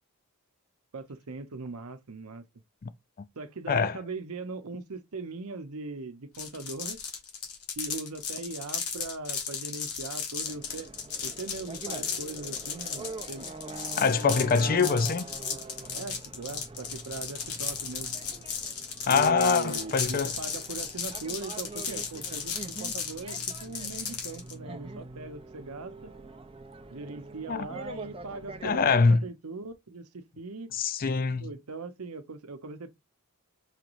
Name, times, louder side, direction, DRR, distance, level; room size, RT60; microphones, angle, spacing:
voice 1, 0.9-2.4 3.4-7.0 7.8-10.9 11.2-13.5 14.5-14.9 15.9-18.2 19.0-26.1 26.9-30.7 31.4-32.9, right 3 dB, 75° right, 0.8 m, -40 dB
voice 2, 3.7-4.0 14.0-15.2 19.1-20.3 27.5-27.7 28.6-29.2 30.7-31.5, left 5 dB, 40° left, 0.4 m, -24 dB
sound 1, 6.3-24.5, left 6 dB, 85° left, 1.4 m, -35 dB
sound 2, 10.4-29.0, right 3 dB, 25° right, 0.6 m, -44 dB
5.8 x 3.0 x 2.5 m
head